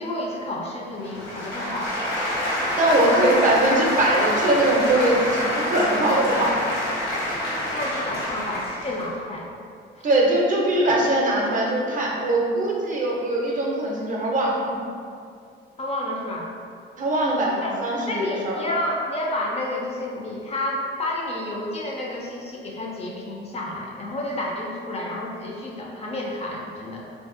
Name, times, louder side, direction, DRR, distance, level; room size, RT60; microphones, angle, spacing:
voice 1, 0.0-1.9 2.9-3.2 7.7-9.5 10.0-10.1 15.8-16.5 17.6-17.7 18.1-27.1, left 1 dB, 30° left, -2 dB, 0.4 m, -30 dB
sound 1, 1.0-9.0, left 1 dB, 80° left, 0.9 m, -27 dB
voice 2, 2.8-6.6 10.0-14.8 17.0-18.6, right 1 dB, 40° right, -3 dB, 0.5 m, -21 dB
2.4 x 2.3 x 2.4 m, 2.3 s
cardioid pair, 90°, 20 cm